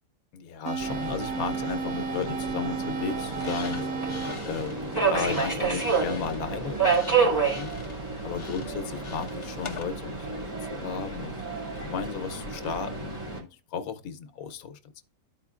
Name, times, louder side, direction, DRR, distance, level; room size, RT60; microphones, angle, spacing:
voice 1, 0.3-3.9 4.5-7.8 8.2-11.4 11.8-15.0, left 6 dB, 80° left, 1.1 m, -35 dB
sound 1, 0.7-5.7, right 5 dB, 85° right, 1.1 m, -34 dB
Subway metro underground, 0.8-13.4, right 5 dB, 15° right, 2.2 m, -30 dB
sound 2, 3.2-9.8, left 5 dB, 35° left, 0.5 m, -44 dB
12.5 x 4.4 x 2.4 m
omnidirectional pair, 1.5 m